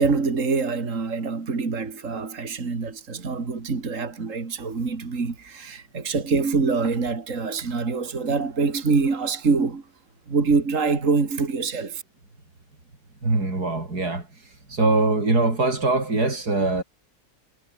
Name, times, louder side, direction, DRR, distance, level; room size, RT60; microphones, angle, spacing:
voice 1, 0.0-9.8 10.3-12.0, right 4 dB, 55° right, 2.9 m, -25 dB
voice 2, 13.2-14.3 14.7-16.8, right 2 dB, 80° right, 5.8 m, -22 dB
omnidirectional pair, 1.6 m